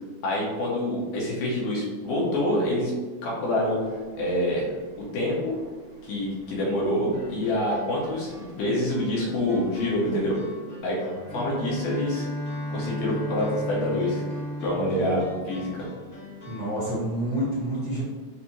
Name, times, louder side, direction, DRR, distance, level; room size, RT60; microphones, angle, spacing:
voice 1, 0.2-2.9 3.2-4.7 5.1-5.5 6.0-10.4 10.8-11.0 11.3-12.3 12.7-14.2 14.6-15.9, left 1 dB, 85° left, -4 dB, 2.7 m, -26 dB
sound 1, 3.5-10.4, right 2 dB, 75° right, 2.0 m, -46 dB
sound 2, 7.1-16.7, left 2 dB, 45° left, 1.2 m, -45 dB
Bowed string instrument, 11.2-16.3, equal, 65° left, 1.8 m, -34 dB
voice 2, 14.7-15.2 16.4-18.0, right 1 dB, 40° right, -10 dB, 1.3 m, -29 dB
5.9 x 2.7 x 2.8 m, 1.4 s
omnidirectional pair, 3.6 m